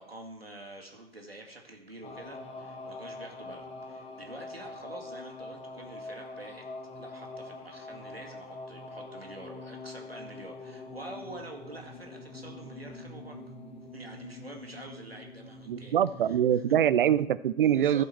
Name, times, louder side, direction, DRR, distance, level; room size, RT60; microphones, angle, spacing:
voice 1, 0.0-6.6 7.0-13.4 13.9-16.0 16.3-16.6 17.6-18.1, right 2 dB, 90° right, 1 dB, 2.2 m, -47 dB
sound 1, 2.0-17.3, left 2 dB, 20° left, 1.6 m, -44 dB
voice 2, 15.7-18.0, right 10 dB, 60° right, 17 dB, 0.6 m, -24 dB
15.0 x 5.3 x 4.6 m, 0.84 s
figure-of-eight pair, 105°, 29 cm